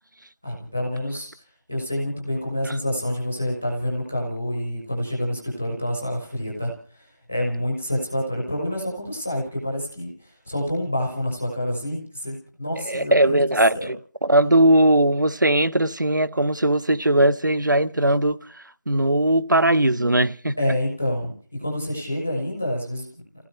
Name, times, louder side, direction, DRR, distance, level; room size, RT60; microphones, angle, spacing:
voice 1, 0.4-1.3 1.7-13.4 13.7-13.9 20.6-23.2, left 1 dB, 5° left, 0.7 m, -28 dB
voice 2, 12.8-14.0 14.2-18.4 18.9-20.5, right 1 dB, 80° right, 1.1 m, -19 dB
28.5 x 16.0 x 3.1 m
figure-of-eight pair, 175°, 10 cm